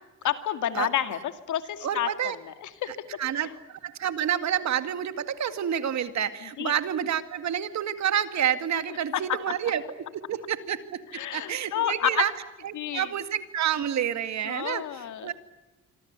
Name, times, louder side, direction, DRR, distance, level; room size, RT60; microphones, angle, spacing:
voice 1, 0.2-1.2 1.5-2.1 2.5-2.9 6.6-6.7 11.1-12.2 12.7-13.1 14.5-15.3, left 11 dB, 75° left, 9 dB, 2.2 m, -29 dB
voice 2, 1.8-2.4 2.9-12.3 12.6-15.3, right 9 dB, 65° right, 10 dB, 2.2 m, -29 dB
26.5 x 24.5 x 8.2 m, 1.1 s
cardioid pair, 90°, 30 cm